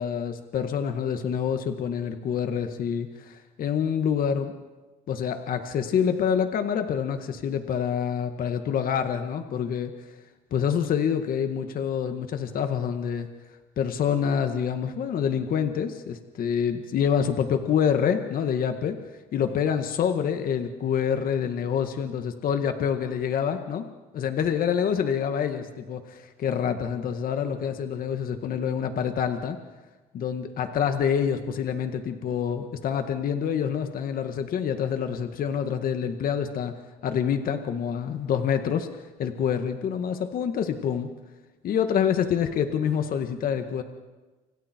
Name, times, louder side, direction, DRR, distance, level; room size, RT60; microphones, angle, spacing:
voice 1, 0.0-4.5 5.1-9.9 10.5-13.3 13.8-19.0 19.3-23.9 24.1-29.6 30.1-36.7 37.0-41.1 41.6-43.8, left 8 dB, 60° left, 7 dB, 1.9 m, -27 dB
29.5 x 27.0 x 4.6 m, 1.2 s
cardioid pair, 110°, 17 cm